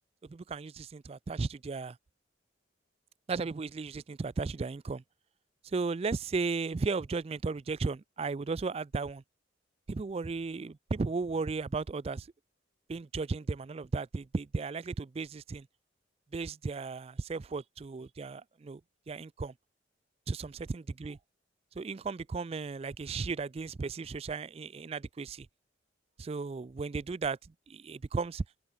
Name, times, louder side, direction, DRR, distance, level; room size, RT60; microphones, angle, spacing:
voice 1, 0.3-2.0 3.3-5.0 5.7-9.2 9.9-12.3 12.9-15.7 16.3-18.8 19.1-19.5 20.3-21.2 21.8-25.5 26.2-27.4 27.7-28.4, right 4 dB, 30° right, 0.3 m, -35 dB
head